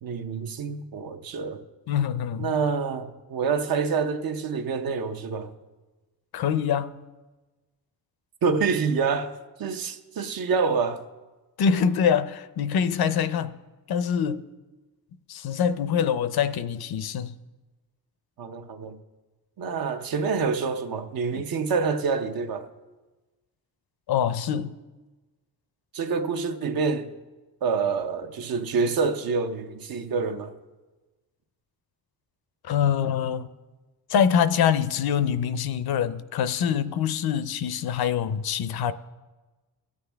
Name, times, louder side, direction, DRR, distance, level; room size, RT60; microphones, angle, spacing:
voice 1, 0.0-1.6 2.4-5.5 8.4-11.0 18.4-19.0 19.6-22.7 25.9-27.1 27.6-30.6, right 5 dB, 65° right, 0.9 m, -27 dB
voice 2, 1.9-2.6 6.3-7.0 11.6-13.5 13.9-14.4 15.3-17.3 21.3-21.4 24.1-24.7 32.6-33.5 34.1-38.9, left 8 dB, 75° left, 0.6 m, -24 dB
20.0 x 7.7 x 3.4 m
cardioid pair, 120°, 38 cm